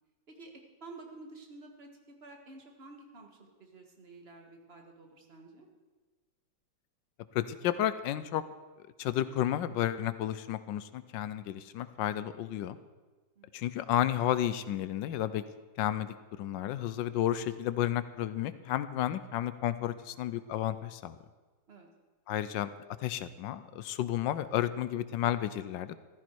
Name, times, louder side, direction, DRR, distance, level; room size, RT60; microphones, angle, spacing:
voice 1, 0.8-1.9 2.2-5.7 13.4-13.6 21.7-21.9, right 3 dB, 35° right, 3 dB, 1.8 m, -51 dB
voice 2, 7.3-8.4 8.8-12.8 13.5-15.4 15.8-21.1 22.3-22.7 23.0-26.0, left 12 dB, 85° left, 14 dB, 1.3 m, -32 dB
14.5 x 14.0 x 4.6 m, 1.3 s
omnidirectional pair, 2.0 m